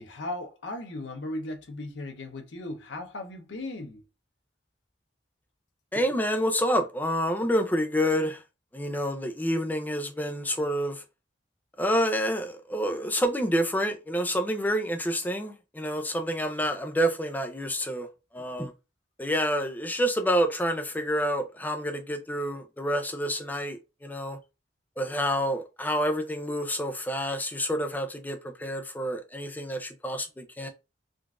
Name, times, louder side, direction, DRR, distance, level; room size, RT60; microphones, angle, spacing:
voice 1, 0.0-4.0, left 1 dB, 80° left, 0.7 m, -37 dB
voice 2, 5.9-8.4 8.7-11.0 11.8-18.1 18.3-18.7 19.2-24.4 25.0-30.7, equal, 10° left, 0.4 m, -28 dB
3.7 x 2.4 x 2.4 m
head